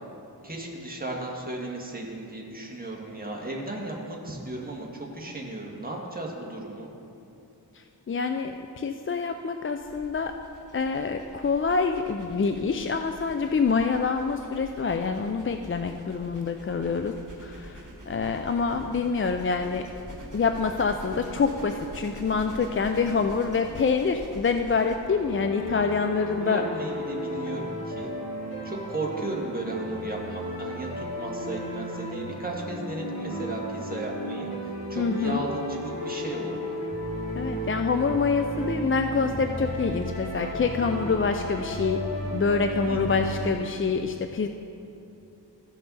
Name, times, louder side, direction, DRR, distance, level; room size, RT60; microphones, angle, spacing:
voice 1, 0.4-6.9 26.4-28.1 28.6-36.6 42.9-43.2, right 2 dB, 20° right, -2 dB, 1.8 m, -35 dB
voice 2, 7.7-10.3 10.7-17.1 17.4-19.8 20.3-26.6 34.9-35.4 37.4-42.0 42.3-44.5, left 5 dB, 30° left, 6 dB, 0.4 m, -26 dB
sound 1, 9.8-25.0, right 1 dB, 45° right, 1.6 m, -44 dB
sound 2, 25.1-43.5, equal, 60° left, 2.2 m, -34 dB
15.0 x 5.6 x 4.0 m, 2.8 s
wide cardioid pair, 60°, 42 cm